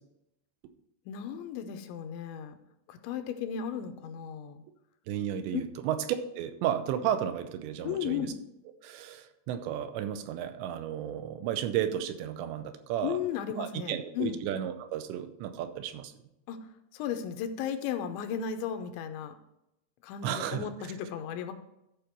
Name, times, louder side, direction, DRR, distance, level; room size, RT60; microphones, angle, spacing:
voice 1, 1.1-2.6 2.9-4.6 5.5-5.6 7.8-8.3 13.0-14.4 16.5-16.7 16.9-19.3 20.0-21.5, left 8 dB, 85° left, 8 dB, 3.0 m, -35 dB
voice 2, 5.1-6.0 6.4-8.3 8.8-13.2 13.6-16.1 20.2-20.7, right 10 dB, 85° right, 9 dB, 2.9 m, -33 dB
13.0 x 5.1 x 4.5 m, 0.85 s
omnidirectional pair, 5.2 m